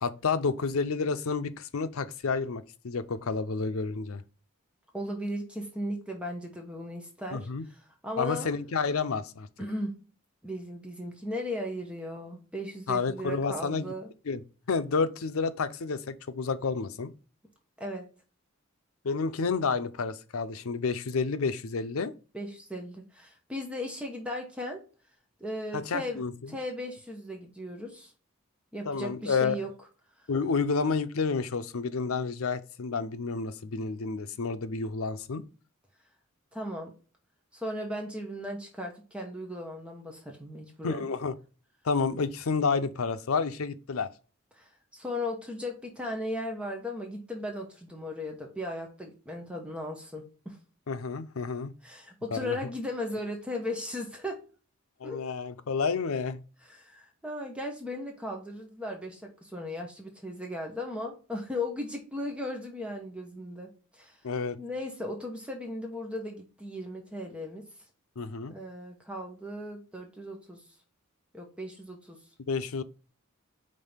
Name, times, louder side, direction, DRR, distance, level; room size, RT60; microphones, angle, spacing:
voice 1, 0.0-4.2 7.3-7.6 8.2-9.5 12.9-13.9 14.3-14.4 14.7-17.1 19.0-22.1 25.7-26.5 28.9-29.6 30.3-35.4 40.8-41.3 41.8-44.1 50.9-51.7 52.3-52.6 55.0-56.4 64.2-64.6 68.2-68.5 72.5-72.8, left 4 dB, 85° left, 0.6 m, -30 dB
voice 2, 4.9-8.5 9.6-10.0 10.4-14.1 17.8-18.1 22.3-24.8 25.4-26.2 26.5-28.1 28.7-29.7 36.5-36.9 37.5-41.1 44.5-50.6 51.8-54.4 55.0-55.2 56.6-64.2 64.6-67.7 68.5-70.6 71.3-72.2, left 1 dB, 5° right, 1.1 m, -37 dB
5.3 x 3.7 x 5.6 m
head